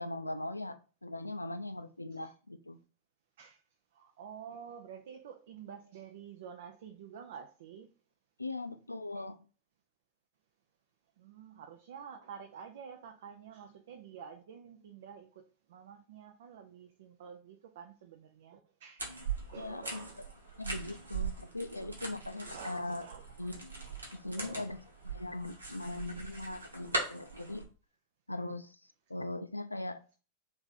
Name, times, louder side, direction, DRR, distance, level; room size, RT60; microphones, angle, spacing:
voice 1, 0.0-2.8 8.4-9.4 19.5-20.0 20.6-23.1 23.4-23.6 24.1-24.8 25.0-27.7 28.3-30.0, left 2 dB, 85° left, 0.4 m, -40 dB
voice 2, 3.9-7.9 11.2-19.1 19.5-20.3 20.9-21.0 22.5-23.3 24.3-24.7 28.5-28.6, right 7 dB, 60° right, 0.5 m, -49 dB
sound 1, 19.0-27.6, right 4 dB, 80° right, 1.3 m, -41 dB
3.4 x 3.4 x 4.0 m
figure-of-eight pair, 90°, 0 cm